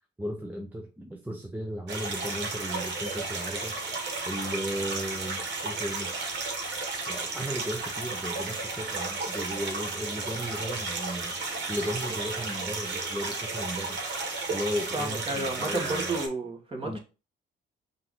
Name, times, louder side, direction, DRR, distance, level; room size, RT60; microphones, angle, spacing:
voice 1, 0.2-3.8 4.2-6.1 7.1-14.0 14.5-16.2 16.8-17.0, equal, 10° right, 2 dB, 0.6 m, -35 dB
sound 1, 1.9-16.3, right 3 dB, 60° right, 1.5 m, -33 dB
voice 2, 14.9-17.0, right 2 dB, 25° right, 1 dB, 1.6 m, -32 dB
5.4 x 2.7 x 3.6 m, 0.32 s
cardioid pair, 90°, 20 cm